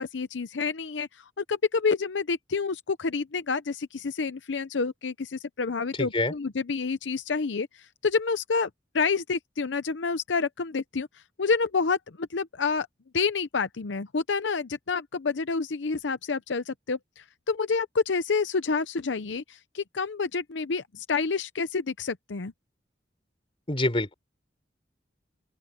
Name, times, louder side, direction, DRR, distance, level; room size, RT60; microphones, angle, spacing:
voice 1, 0.0-8.7 8.9-11.1 11.4-12.9 13.1-22.5, left 4 dB, 90° left, 0.7 m, -28 dB
voice 2, 5.9-6.3 23.7-24.1, left 2 dB, 30° left, 4.0 m, -26 dB
open air
head